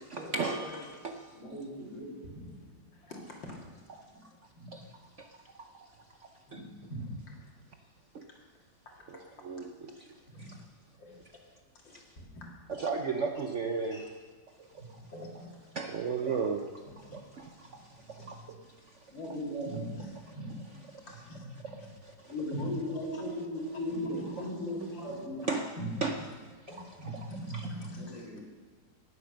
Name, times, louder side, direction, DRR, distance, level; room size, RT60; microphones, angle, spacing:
voice 1, 0.0-0.8 4.7-4.8 5.2-5.3 6.5-6.6 8.1-8.2 9.5-9.6 12.8-14.0 14.6-14.7 15.8-16.7 17.1-17.2 18.1-18.3 20.9-21.0 23.1-23.2 25.5-25.7 26.0-26.2, right 5 dB, 55° right, 5 dB, 0.9 m, -33 dB
voice 2, 0.6-1.4 1.7-3.6 4.3-4.4 6.5-7.4 8.3-9.4 10.3-10.6 11.0-11.2 11.8-12.1 12.3-12.5 13.9-14.1 15.1-15.7 18.2-18.3 20.0-20.2 21.1-21.5 22.6-22.7 23.1-23.2 24.0-25.2 25.6-25.7 26.2-26.3 26.7-26.9 27.3-28.3, left 1 dB, 90° left, -1 dB, 3.0 m, -48 dB
voice 3, 1.3-2.5 4.1-4.2 4.5-4.7 6.5-7.0 10.3-10.4 14.8-14.9 19.1-19.8 20.3-20.8 22.3-25.5 25.8-25.9 27.0-27.1 27.5-27.6 28.0-28.3, left 1 dB, 45° left, -5 dB, 4.8 m, -37 dB
18.5 x 8.0 x 6.4 m, 1.5 s
omnidirectional pair, 2.0 m